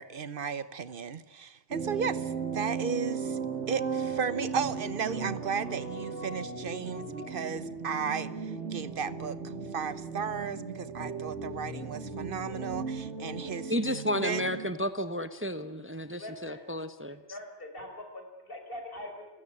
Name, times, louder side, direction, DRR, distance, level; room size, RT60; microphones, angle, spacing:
voice 1, 0.0-3.4 3.7-13.7 14.2-14.5, right 6 dB, 55° right, 16 dB, 1.2 m, -35 dB
sound 1, 1.7-14.7, right 5 dB, 85° right, 3.6 m, -36 dB
voice 2, 13.7-17.2, equal, 10° right, 11 dB, 1.0 m, -32 dB
voice 3, 16.2-16.7 17.1-19.3, left 1 dB, 55° left, 4 dB, 5.7 m, -43 dB
30.0 x 16.5 x 9.9 m, 0.97 s
omnidirectional pair, 1.1 m